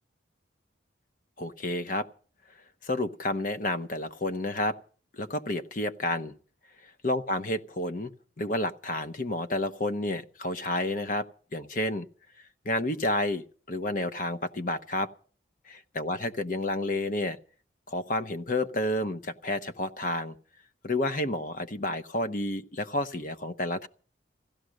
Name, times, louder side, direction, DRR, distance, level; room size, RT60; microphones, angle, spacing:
voice 1, 1.4-2.1 2.8-4.8 5.1-6.3 7.0-8.1 8.4-11.3 11.5-12.1 12.6-15.1 15.7-17.4 17.9-20.3 20.8-23.9, left 1 dB, 45° left, 0.9 m, -30 dB
16.0 x 13.0 x 6.3 m
head